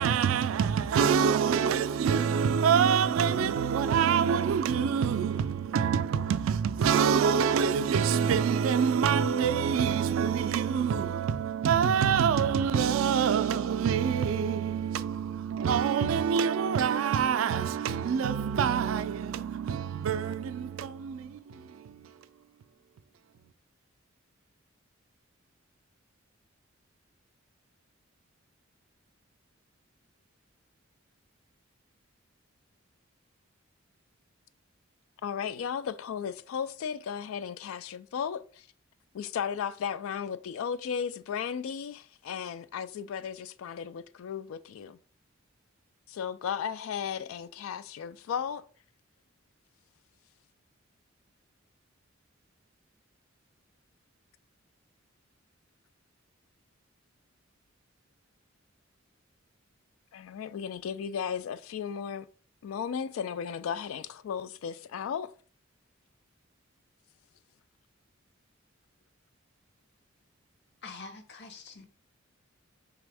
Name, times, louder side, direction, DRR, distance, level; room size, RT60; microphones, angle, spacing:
voice 1, 0.0-22.1, right 7 dB, 80° right, 0.3 m, -26 dB
voice 2, 35.2-38.7 39.1-45.0 46.1-48.7 60.1-62.3 62.6-65.3, left 7 dB, 90° left, 0.3 m, -35 dB
voice 3, 70.8-71.9, left 4 dB, 55° left, 0.7 m, -45 dB
4.1 x 3.5 x 3.4 m
head